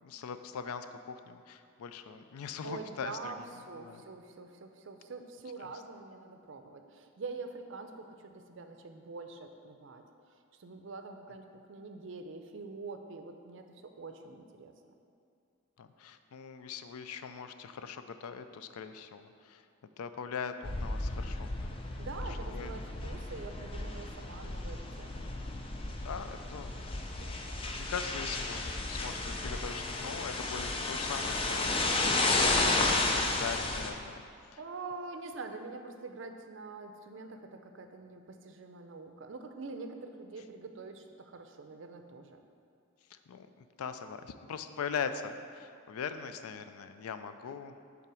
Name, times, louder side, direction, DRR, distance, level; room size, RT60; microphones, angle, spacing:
voice 1, 0.0-3.3 3.8-4.0 15.8-19.6 20.0-21.8 22.4-22.7 26.0-27.4 27.8-32.3 32.6-34.2 43.1-47.7, left 6 dB, 90° left, 10 dB, 0.4 m, -41 dB
voice 2, 2.6-10.0 10.6-14.7 22.0-25.3 34.6-42.4, right 3 dB, 60° right, 6 dB, 0.5 m, -45 dB
sound 1, 20.6-33.9, left 2 dB, 25° left, 0.4 m, -33 dB
5.6 x 3.9 x 6.1 m, 2.4 s
head